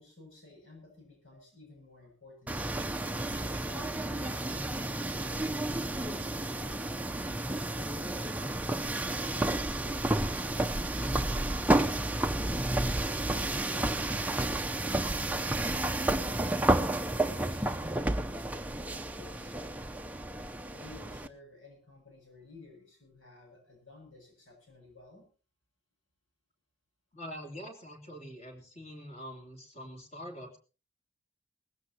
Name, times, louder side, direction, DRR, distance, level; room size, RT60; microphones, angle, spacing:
voice 1, 0.0-2.8 3.3-7.3 7.8-10.0 10.4-12.2 13.0-19.7 20.7-25.3, left 2 dB, 70° left, 2 dB, 7.4 m, -54 dB
sound 1, 2.5-21.3, right 1 dB, 5° right, 0.6 m, -31 dB
voice 2, 27.1-30.6, equal, 30° left, 4 dB, 3.3 m, -44 dB
19.5 x 16.0 x 2.9 m, 0.34 s
head